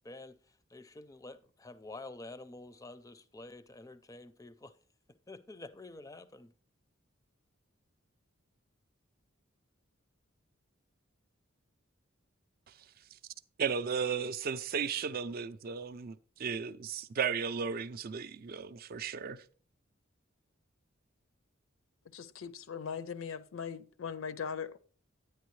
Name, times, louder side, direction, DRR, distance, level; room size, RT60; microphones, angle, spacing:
voice 1, 0.0-0.4 0.7-4.7 5.3-6.5, left 2 dB, 15° left, 0.4 m, -48 dB
voice 2, 13.6-19.4, right 6 dB, 45° right, 0.4 m, -35 dB
voice 3, 22.1-24.8, left 6 dB, 75° left, 0.5 m, -40 dB
9.8 x 9.4 x 3.1 m
head